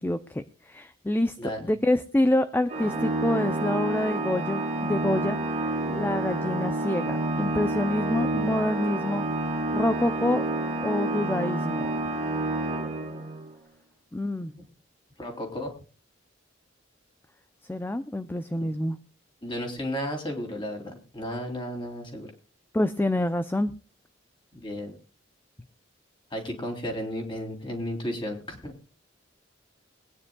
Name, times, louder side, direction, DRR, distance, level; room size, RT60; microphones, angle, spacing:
voice 1, 0.0-5.4 5.9-9.3 9.7-10.4 10.8-11.9 14.1-14.5 17.7-19.0 22.7-23.7, left 1 dB, 10° left, 11 dB, 0.5 m, -27 dB
Organ, 2.7-13.5, right 2 dB, 35° right, 1.5 m, -29 dB
voice 2, 15.2-15.7 19.4-22.3 24.5-25.0 26.3-28.7, equal, 25° left, 2 dB, 3.0 m, -33 dB
22.5 x 9.6 x 2.3 m, 0.36 s
head